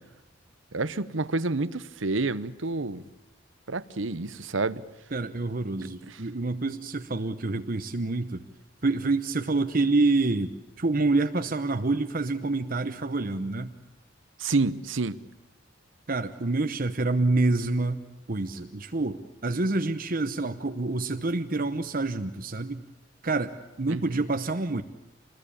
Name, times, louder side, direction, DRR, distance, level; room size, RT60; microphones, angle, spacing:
voice 1, 0.7-3.0 3.7-4.8 6.1-6.2 14.4-15.2 23.9-24.2, right 3 dB, 70° right, 0.9 m, -29 dB
voice 2, 5.1-8.4 8.8-13.7 16.1-18.0 18.3-22.8 23.2-24.8, right 3 dB, 45° right, 0.9 m, -27 dB
26.5 x 21.0 x 8.7 m
head